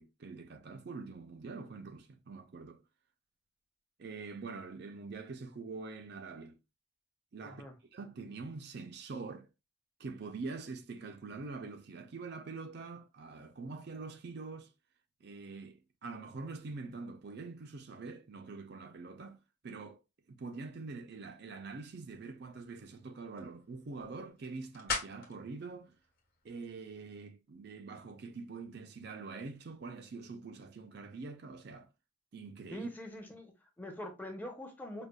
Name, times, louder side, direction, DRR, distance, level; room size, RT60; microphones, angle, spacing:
voice 1, 0.0-2.8 4.0-6.6 7.3-7.6 7.9-9.5 10.0-14.7 15.2-19.4 19.6-20.0 20.3-25.9 26.4-31.9 32.3-32.9, right 4 dB, 50° right, 0.4 m, -45 dB
voice 2, 7.4-7.7 32.7-35.1, left 1 dB, 10° left, 0.6 m, -44 dB
sound 1, 21.9-27.1, left 3 dB, 45° left, 1.1 m, -44 dB
5.0 x 2.3 x 2.2 m
head